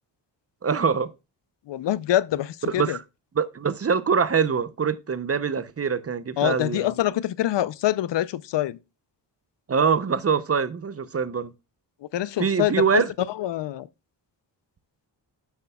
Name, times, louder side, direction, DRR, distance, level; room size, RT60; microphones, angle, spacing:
voice 1, 0.6-1.1 2.7-3.0 3.3-6.9 9.7-11.5 12.4-13.1, right 6 dB, 30° right, 0.7 m, -24 dB
voice 2, 1.7-3.0 6.4-8.8 12.1-13.0 13.4-13.9, left 13 dB, 70° left, 0.6 m, -25 dB
11.0 x 8.0 x 2.3 m
cardioid pair, 75°, 45 cm